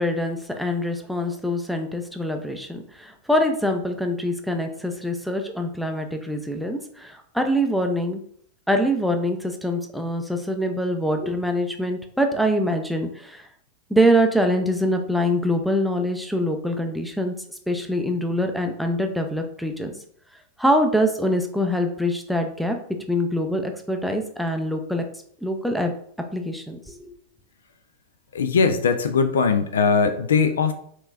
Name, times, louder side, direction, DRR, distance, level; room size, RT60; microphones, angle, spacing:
voice 1, 0.0-8.2 8.7-13.5 13.9-17.3 17.7-19.9 20.6-22.8 23.1-25.0 25.4-25.9 26.3-27.1, equal, ahead, 5 dB, 0.5 m, -24 dB
voice 2, 28.3-30.7, left 5 dB, 65° left, 8 dB, 0.4 m, -20 dB
4.4 x 3.0 x 2.4 m, 0.62 s
figure-of-eight pair, 90°, 0 cm